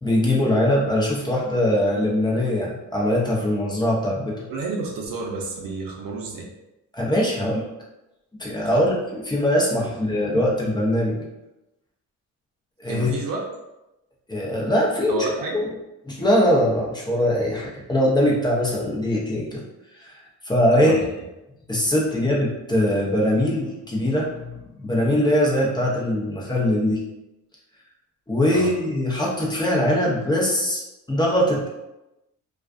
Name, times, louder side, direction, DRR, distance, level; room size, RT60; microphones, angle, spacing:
voice 1, 0.0-4.4 6.9-7.7 8.4-11.3 12.8-13.1 14.3-15.2 15.5-15.6 16.1-19.6 20.0-21.0 21.7-27.0 28.3-30.8 31.1-31.7, left 1 dB, 10° left, -4 dB, 0.7 m, -22 dB
voice 2, 4.5-6.5 8.7-8.8 9.9-10.0 10.2-10.4 12.9-13.4 15.1-15.6 20.7-21.0 28.5-28.7, right 4 dB, 70° right, -1 dB, 0.7 m, -30 dB
2.4 x 2.3 x 2.4 m, 0.95 s
cardioid pair, 75°, 35 cm